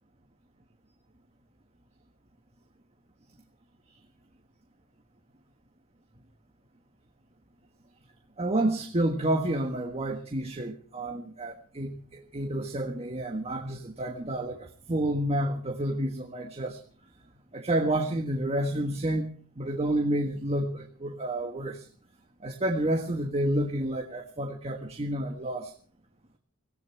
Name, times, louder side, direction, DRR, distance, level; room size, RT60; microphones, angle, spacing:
voice 1, 8.4-16.8 17.5-19.3 19.6-21.9 22.4-25.7, right 1 dB, 30° right, 3 dB, 1.5 m, -29 dB
25.0 x 17.0 x 3.5 m, 0.41 s
head